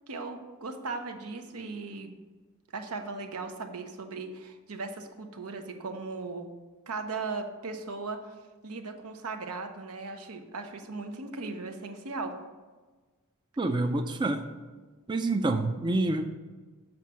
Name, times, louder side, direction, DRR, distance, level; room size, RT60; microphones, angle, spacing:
voice 1, 0.1-2.2 2.7-6.5 6.9-8.3 8.6-12.4, right 3 dB, 85° right, 5 dB, 0.9 m, -37 dB
voice 2, 13.6-14.4 15.1-16.2, right 2 dB, 20° right, 6 dB, 0.4 m, -27 dB
7.5 x 4.5 x 6.2 m, 1.3 s
head